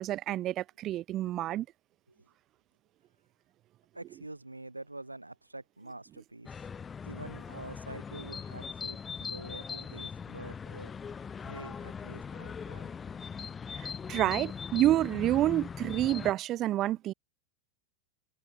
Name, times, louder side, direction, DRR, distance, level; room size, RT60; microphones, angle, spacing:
voice 1, 0.0-1.7 13.7-17.1, right 14 dB, 35° right, 0.3 m, -29 dB
voice 2, 3.9-6.7 7.0-10.9 11.4-12.9, right 2 dB, 85° right, 1.1 m, -46 dB
sound 1, 6.5-16.3, left 6 dB, 20° left, 0.8 m, -40 dB
figure-of-eight pair, 90°, 0 cm